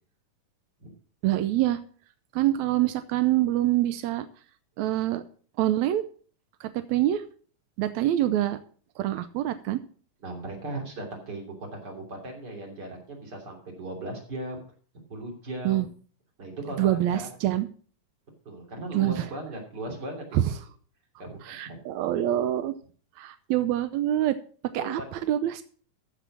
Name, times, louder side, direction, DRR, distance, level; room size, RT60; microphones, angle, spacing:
voice 1, 1.2-1.8 2.3-4.3 4.8-5.2 5.6-6.0 6.6-7.2 7.8-8.6 9.0-9.8 15.6-15.8 16.8-17.7 18.9-19.3 20.3-20.4 21.5-22.7 23.2-24.4 24.7-25.6, right 13 dB, 85° right, 11 dB, 1.6 m, -25 dB
voice 2, 10.2-14.6 15.1-15.9 16.4-17.3 18.4-20.6 21.2-21.8 24.8-25.0, right 1 dB, 30° right, 1 dB, 3.5 m, -37 dB
14.0 x 5.9 x 6.0 m, 0.43 s
omnidirectional pair, 4.0 m